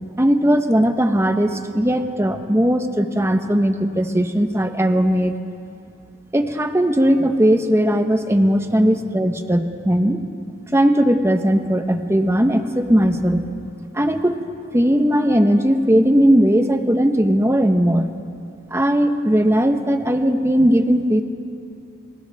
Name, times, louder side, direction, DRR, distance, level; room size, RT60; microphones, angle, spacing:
voice 1, 0.2-5.4 6.3-10.2 10.7-13.5 13.9-14.4 14.7-18.1 18.7-21.2, equal, 15° right, 6 dB, 1.1 m, -18 dB
29.5 x 29.0 x 3.5 m, 2.5 s
head